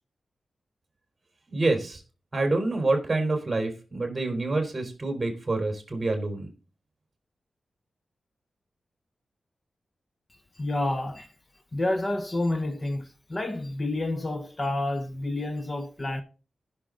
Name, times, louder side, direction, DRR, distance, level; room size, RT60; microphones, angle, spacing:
voice 1, 1.5-2.0 2.3-6.5, right 2 dB, 25° right, 3.6 m, -27 dB
voice 2, 10.6-11.3 11.7-16.2, left 2 dB, 25° left, 0.8 m, -29 dB
15.0 x 6.5 x 3.7 m
wide cardioid pair, 115°, 0 cm